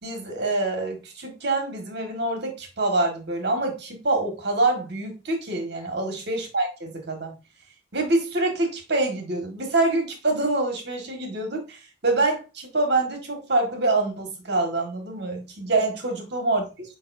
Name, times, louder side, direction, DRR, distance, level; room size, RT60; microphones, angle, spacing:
voice 1, 0.0-7.3 7.9-16.9, right 2 dB, 65° right, 1.7 m, -26 dB
7.1 x 5.2 x 2.6 m
head